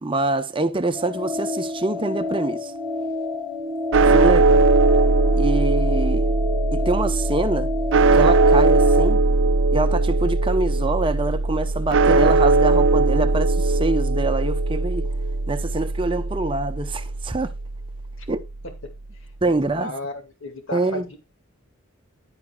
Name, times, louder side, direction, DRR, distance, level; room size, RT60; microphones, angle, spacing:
voice 1, 0.0-2.7 4.1-4.7 5.3-6.3 6.7-7.7 8.1-9.2 9.7-15.1 15.5-17.5 18.3-18.4 19.4-19.9 20.7-21.1, right 2 dB, 25° right, 0.7 m, -25 dB
sound 1, 0.9-9.1, left 3 dB, 5° left, 1.9 m, -29 dB
sound 2, 3.9-18.2, right 3 dB, 60° right, 0.4 m, -19 dB
voice 2, 6.0-6.4 18.2-18.3 18.8-18.9 19.2-21.2, left 2 dB, 65° left, 2.0 m, -36 dB
11.0 x 9.9 x 2.3 m
head